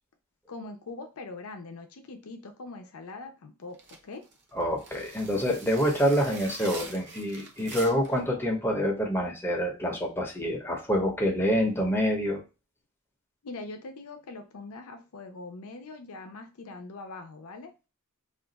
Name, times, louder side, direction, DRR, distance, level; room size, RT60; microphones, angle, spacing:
voice 1, 0.5-3.8 4.0-4.2 13.4-17.7, left 3 dB, 85° left, 5 dB, 0.6 m, -42 dB
sound 1, 3.7-8.2, right 4 dB, 55° right, 0.7 m, -44 dB
voice 2, 4.5-12.4, equal, 10° left, 0 dB, 0.7 m, -27 dB
2.5 x 2.3 x 3.9 m, 0.29 s
head